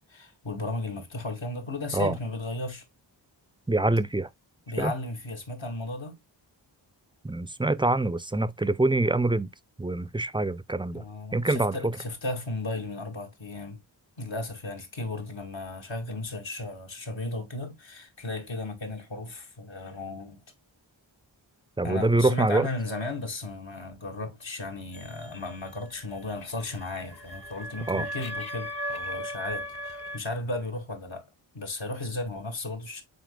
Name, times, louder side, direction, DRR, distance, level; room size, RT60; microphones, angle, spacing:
voice 1, 0.1-2.8 4.7-6.2 10.9-13.8 14.2-20.4 21.8-31.3 31.5-33.0, left 2 dB, 75° left, 2.4 m, -35 dB
voice 2, 3.7-4.3 4.8-4.9 7.2-9.5 9.8-11.0 11.3-11.9 21.8-22.7 27.9-28.1, right 2 dB, 10° right, 0.5 m, -25 dB
sound 1, 24.9-30.2, equal, 55° left, 1.1 m, -37 dB
9.2 x 4.4 x 2.3 m
wide cardioid pair, 70°, 45 cm